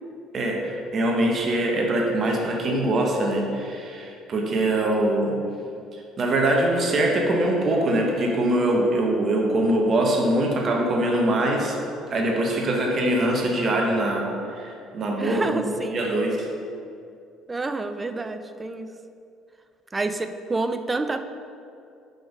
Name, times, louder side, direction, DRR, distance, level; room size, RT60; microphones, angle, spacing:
voice 1, 0.3-5.4 5.9-11.8 12.1-16.5, right 1 dB, 45° right, 0 dB, 0.9 m, -23 dB
voice 2, 15.1-16.0 17.5-18.9 19.9-21.2, right 3 dB, 20° right, 9 dB, 0.4 m, -28 dB
5.2 x 3.8 x 5.1 m, 2.5 s
supercardioid pair, 85°, 0 cm